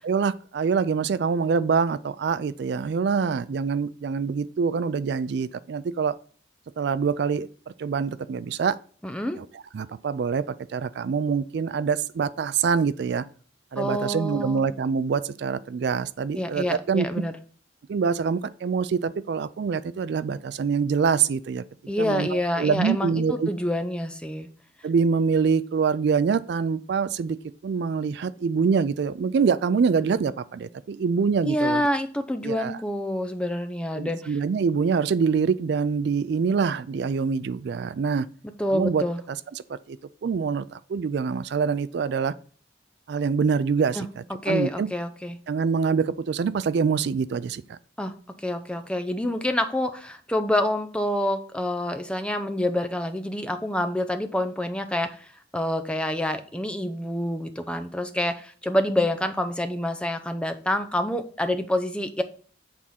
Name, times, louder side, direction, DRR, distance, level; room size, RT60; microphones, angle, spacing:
voice 1, 0.0-6.1 6.8-7.5 7.8-8.8 9.4-9.5 9.7-13.2 13.7-17.2 17.9-21.6 22.0-23.5 24.8-27.4 27.6-31.8 32.4-32.8 34.0-38.3 38.7-39.0 39.7-40.0 40.2-42.3 43.1-44.9 45.5-47.8, right 5 dB, 60° right, 0.3 m, -25 dB
voice 2, 9.0-9.4 13.8-14.7 16.3-17.3 21.9-24.5 31.4-34.4 38.6-39.2 44.0-45.4 48.0-62.2, left 1 dB, 5° left, 0.6 m, -27 dB
8.5 x 3.6 x 5.7 m
head